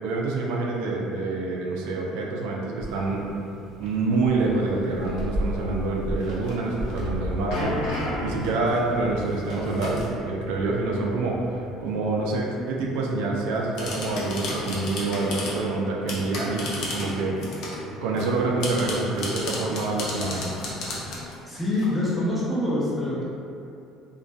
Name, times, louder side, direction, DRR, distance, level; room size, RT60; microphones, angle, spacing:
voice 1, 0.0-3.2 3.8-17.4 18.0-20.5, right 3 dB, 80° right, -2 dB, 0.3 m, -27 dB
sound 1, 2.8-10.0, equal, 30° right, 1.2 m, -35 dB
sound 2, 3.8-4.1 4.9-5.2 6.2-7.1 7.5-8.1 8.4-10.1 13.6-15.6 16.1-17.9 18.2-21.9, left 2 dB, 65° left, 0.5 m, -34 dB
sound 3, 7.5-11.8 12.0-12.2 12.9-13.0, equal, 85° left, 0.8 m, -34 dB
voice 2, 21.5-23.2, left 1 dB, 5° left, -9 dB, 0.7 m, -25 dB
2.5 x 2.2 x 2.3 m, 2.6 s
supercardioid pair, 100°, 0 cm